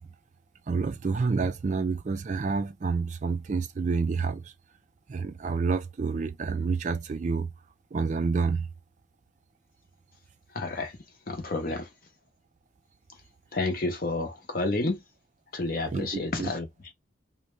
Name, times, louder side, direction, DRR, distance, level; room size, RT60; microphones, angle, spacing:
voice 1, 0.7-4.5 5.1-7.5 7.9-8.7 15.9-16.5, right 4 dB, 40° right, 0.3 m, -28 dB
voice 2, 10.5-11.0 11.3-11.9 13.5-15.0 15.5-16.7, left 2 dB, 50° left, 0.8 m, -30 dB
2.7 x 2.1 x 3.1 m
head